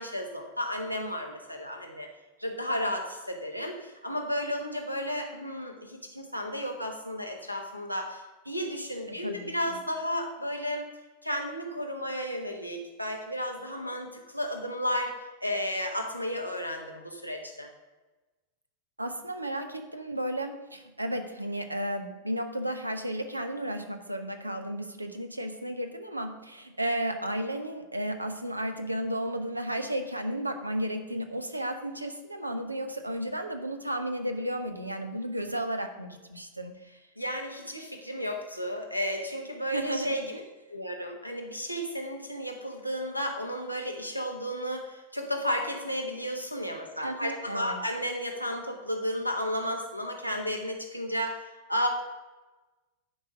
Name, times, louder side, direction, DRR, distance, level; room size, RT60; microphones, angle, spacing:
voice 1, 0.0-2.1 2.4-10.9 11.2-15.1 15.4-17.7 37.2-40.4 40.7-51.9, equal, 90° left, 2 dB, 1.2 m, -33 dB
voice 2, 9.1-9.8 19.0-36.7 39.7-40.2 47.0-47.8, right 1 dB, 85° right, 7 dB, 0.8 m, -33 dB
10.0 x 4.9 x 5.2 m, 1.2 s
figure-of-eight pair, 90°, 0 cm